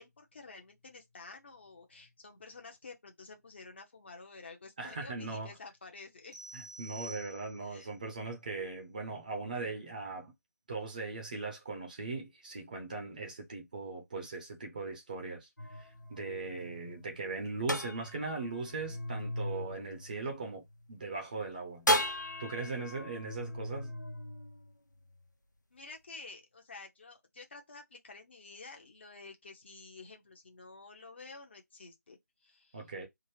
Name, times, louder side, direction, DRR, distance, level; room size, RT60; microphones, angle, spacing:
voice 1, 0.0-6.4 7.6-7.9 25.7-32.9, left 3 dB, 40° left, 0.7 m, -51 dB
voice 2, 4.8-5.5 6.5-10.3 10.7-15.5 15.8-21.9 22.4-23.9 32.7-33.1, right 3 dB, 25° right, 0.7 m, -39 dB
sound 1, 6.3-7.8, right 2 dB, 80° right, 1.3 m, -48 dB
sound 2, 15.6-20.9 21.9-25.2, left 1 dB, 90° left, 0.7 m, -36 dB
3.5 x 2.0 x 3.2 m
figure-of-eight pair, 160°, 10 cm